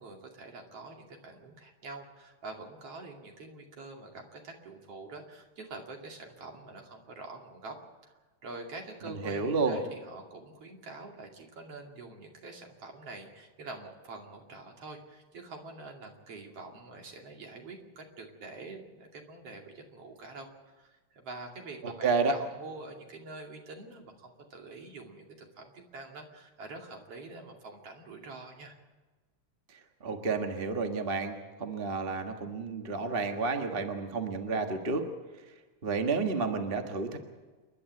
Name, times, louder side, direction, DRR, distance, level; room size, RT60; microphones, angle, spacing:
voice 1, 0.0-7.8 8.0-8.1 8.4-28.8, right 3 dB, 55° right, 2 dB, 3.5 m, -46 dB
voice 2, 9.1-9.8 21.8-22.3 29.7-35.1 35.8-37.2, right 4 dB, 30° right, 5 dB, 1.2 m, -31 dB
28.5 x 11.5 x 9.6 m, 1.3 s
omnidirectional pair, 3.3 m